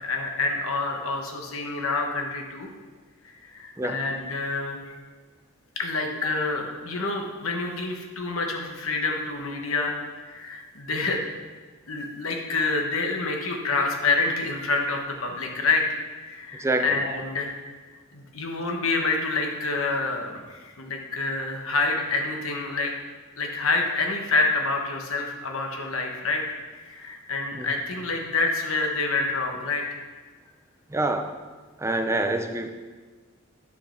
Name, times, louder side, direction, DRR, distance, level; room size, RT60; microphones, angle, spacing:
voice 1, 0.0-2.7 3.4-4.9 5.8-10.0 10.2-11.3 11.9-15.8 16.2-17.6 18.1-22.9 23.4-26.4 26.8-29.8, left 3 dB, 70° left, 2 dB, 1.2 m, -27 dB
voice 2, 16.6-17.0 27.5-27.7 30.9-31.3 31.8-32.7, right 2 dB, 15° right, 6 dB, 0.6 m, -26 dB
9.6 x 5.2 x 5.8 m, 1.4 s
head